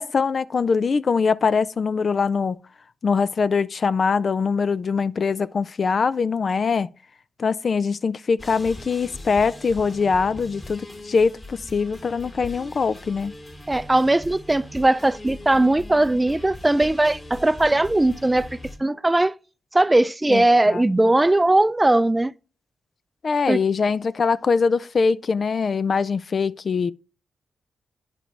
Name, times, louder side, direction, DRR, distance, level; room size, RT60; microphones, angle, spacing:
voice 1, 0.0-2.6 3.0-6.9 7.4-13.3 20.3-20.8 23.2-26.9, left 5 dB, 55° left, 0.3 m, -22 dB
sound 1, 8.4-18.8, left 1 dB, 35° left, 2.6 m, -40 dB
voice 2, 13.7-18.5 18.8-19.3 19.7-22.3 23.5-23.6, right 2 dB, 20° right, 0.4 m, -19 dB
9.8 x 4.9 x 3.3 m
supercardioid pair, 40°, 0 cm